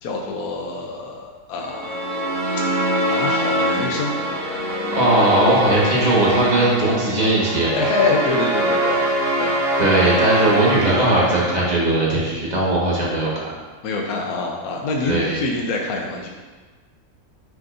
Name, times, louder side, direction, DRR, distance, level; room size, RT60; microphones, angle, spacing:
voice 1, 0.0-2.1 2.6-2.8 3.1-4.2 7.7-9.1 9.4-9.6 13.8-16.3, left 3 dB, 75° left, 0 dB, 1.2 m, -25 dB
sound 1, 1.6-12.0, right 1 dB, 80° right, 2.4 m, -23 dB
voice 2, 4.9-7.7 9.8-13.5 15.0-15.4, right 2 dB, 30° right, -6 dB, 1.7 m, -19 dB
9.3 x 4.7 x 2.6 m, 1.3 s
omnidirectional pair, 1.6 m